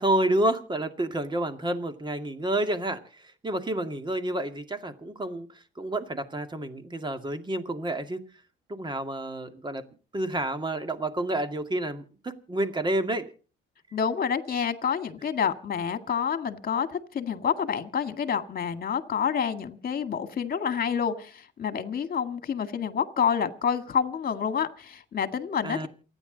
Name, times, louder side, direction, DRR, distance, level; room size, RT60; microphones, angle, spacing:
voice 1, 0.0-5.5 5.8-8.2 8.7-9.8 10.1-13.3 25.6-25.9, right 1 dB, 25° right, 7 dB, 2.2 m, -29 dB
voice 2, 13.9-25.9, left 7 dB, 50° left, 9 dB, 2.0 m, -28 dB
28.5 x 10.0 x 4.0 m, 0.37 s
cardioid pair, 90°, 20 cm